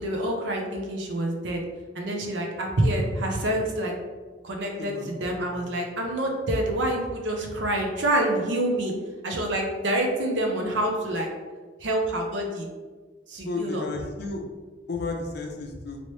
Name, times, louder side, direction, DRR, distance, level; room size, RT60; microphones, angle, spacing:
voice 1, 0.0-1.6 1.9-3.9 4.4-8.9 9.2-11.3 11.8-12.7 13.3-13.9, right 1 dB, 75° right, 1 dB, 0.7 m, -27 dB
voice 2, 4.8-5.7 13.4-14.4 14.9-16.0, left 3 dB, 60° left, 2 dB, 0.5 m, -33 dB
3.0 x 3.0 x 3.0 m, 1.4 s
head